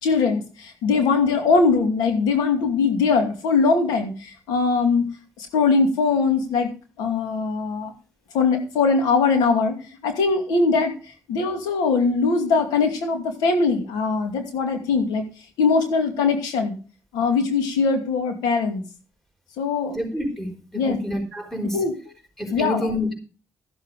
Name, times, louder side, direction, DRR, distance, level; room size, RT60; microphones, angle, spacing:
voice 1, 0.0-5.1 5.4-6.7 7.0-7.9 8.3-9.8 10.0-10.9 11.3-15.2 15.6-16.8 17.1-18.8 19.6-20.0 20.7-21.0 21.7-21.9 22.5-22.9, left 4 dB, 90° left, 5 dB, 2.5 m, -21 dB
voice 2, 19.9-21.8 22.4-23.1, left 1 dB, 5° left, 2 dB, 4.8 m, -28 dB
14.0 x 7.7 x 5.0 m, 0.36 s
supercardioid pair, 50°, 7 cm